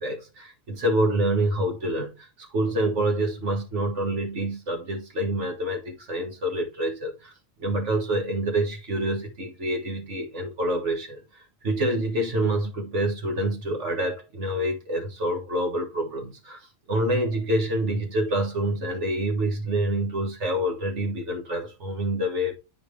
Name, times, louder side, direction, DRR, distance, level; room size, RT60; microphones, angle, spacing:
voice 1, 0.0-7.3 7.6-22.6, right 1 dB, 65° right, 1.8 m, -27 dB
8.5 x 4.6 x 3.3 m
omnidirectional pair, 1.3 m